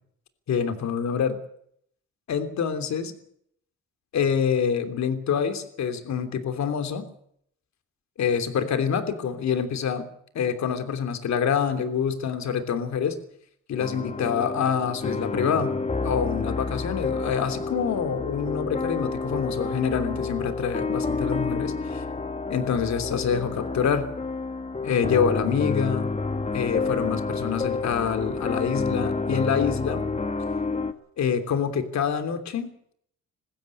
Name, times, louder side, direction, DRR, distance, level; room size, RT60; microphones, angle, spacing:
voice 1, 0.5-1.4 2.3-3.1 4.1-7.0 8.2-10.1 10.3-13.2 13.7-15.8 16.0-22.0 22.5-24.1 24.8-26.1 26.5-30.0 31.2-32.7, left 7 dB, 65° left, 9 dB, 3.2 m, -26 dB
sound 1, 13.8-30.9, left 3 dB, 20° left, 1.8 m, -29 dB
21.0 x 15.5 x 8.5 m, 0.68 s
cardioid pair, 90°, 30 cm